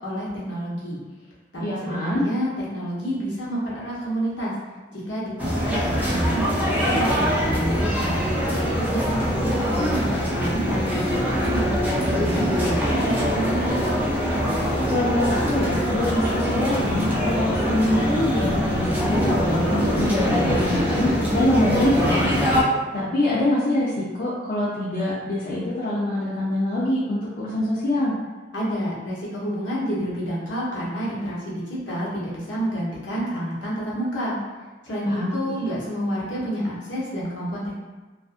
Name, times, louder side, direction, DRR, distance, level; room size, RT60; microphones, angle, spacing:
voice 1, 0.0-1.0 1.5-4.5 4.9-8.3 8.8-13.8 28.5-34.4 34.8-37.7, equal, 70° left, -6 dB, 0.9 m, -29 dB
voice 2, 1.6-2.3 14.9-22.5 22.9-28.2 35.0-35.3, left 1 dB, 50° left, -9 dB, 0.5 m, -24 dB
sound 1, 5.4-22.6, equal, 10° right, 0.5 m, -23 dB
2.5 x 2.4 x 2.4 m, 1.3 s
head